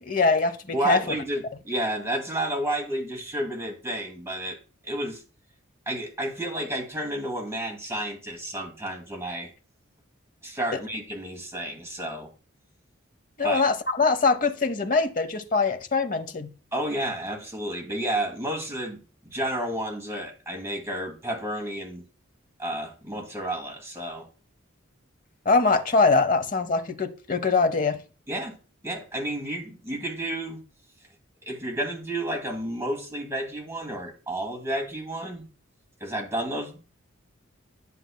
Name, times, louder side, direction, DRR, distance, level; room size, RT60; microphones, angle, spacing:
voice 1, 0.0-1.0 13.4-16.5 25.5-28.0, left 4 dB, 40° left, 0.8 m, -23 dB
voice 2, 0.7-4.6 4.8-5.2 5.9-9.5 10.4-12.3 13.4-13.7 16.7-19.0 19.2-22.1 22.6-24.3 28.3-28.6 28.8-30.6 31.4-35.5 36.0-36.8, right 1 dB, 15° right, 2.3 m, -31 dB
11.0 x 6.9 x 2.2 m
head